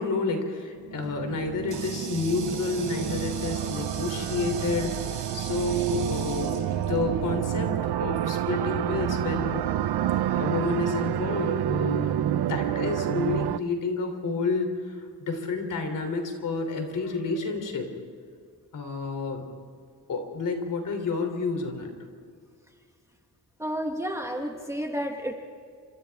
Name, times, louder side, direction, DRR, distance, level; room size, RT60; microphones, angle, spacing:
voice 1, 0.0-9.7 10.3-17.9 18.7-19.5 20.1-21.9, left 3 dB, 50° left, 5 dB, 3.3 m, -30 dB
sound 1, 0.8-13.6, right 11 dB, 80° right, 0.7 m, -29 dB
Water tap faucet, 1.0-7.5, right 6 dB, 50° right, 3.8 m, -41 dB
voice 2, 23.6-25.4, equal, 5° right, 2 dB, 1.3 m, -31 dB
29.0 x 26.0 x 3.6 m, 2.1 s
wide cardioid pair, 170°, 39 cm